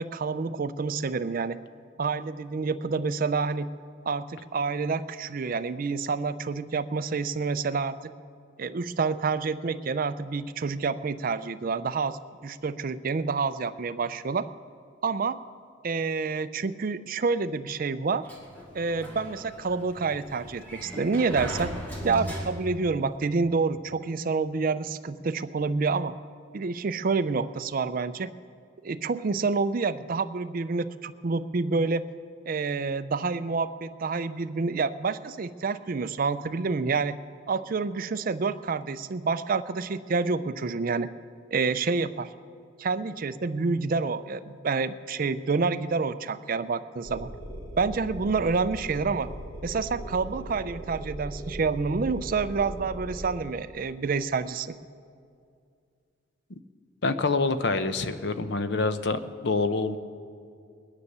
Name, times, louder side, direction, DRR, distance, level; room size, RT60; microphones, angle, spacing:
voice 1, 0.0-1.6 2.0-3.7 4.0-8.1 8.6-14.4 15.0-15.4 15.8-18.2 18.7-21.7 22.0-26.1 26.5-28.3 28.8-32.1 32.5-37.2 37.5-41.1 41.5-42.3 42.8-47.3 47.8-49.3 49.6-54.7, right 4 dB, 40° right, 13 dB, 0.4 m, -28 dB
Sliding door, 18.3-22.9, equal, 10° left, 1.9 m, -38 dB
sound 1, 47.0-53.3, right 1 dB, 30° left, 2.8 m, -39 dB
voice 2, 57.0-60.0, left 3 dB, 55° left, 10 dB, 0.7 m, -26 dB
21.5 x 9.9 x 6.7 m, 2.4 s
head